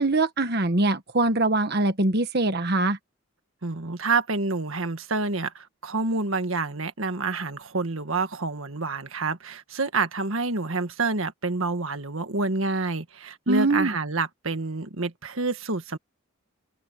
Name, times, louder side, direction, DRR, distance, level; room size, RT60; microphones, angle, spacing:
voice 1, 0.0-3.0 13.5-13.9, right 2 dB, 50° right, 1.4 m, -23 dB
voice 2, 3.6-16.0, right 3 dB, 70° right, 1.7 m, -28 dB
head